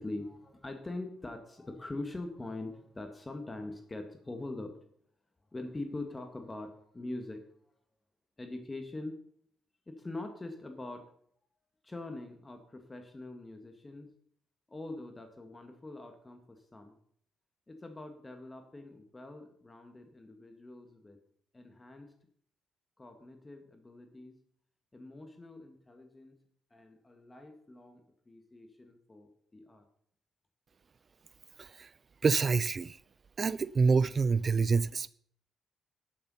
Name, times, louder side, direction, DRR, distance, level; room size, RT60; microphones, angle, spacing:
voice 1, 0.0-4.7 5.5-7.4 8.4-9.2 9.9-11.1 11.8-14.1 14.7-16.9 17.7-21.2 21.5-22.1 23.0-24.4 24.9-26.4 26.7-28.0 28.3-29.9, left 2 dB, 20° left, 1.7 m, -43 dB
voice 2, 32.2-33.0 33.4-35.1, right 4 dB, 40° right, 0.3 m, -27 dB
11.0 x 7.8 x 5.6 m
cardioid pair, 90°, 0 cm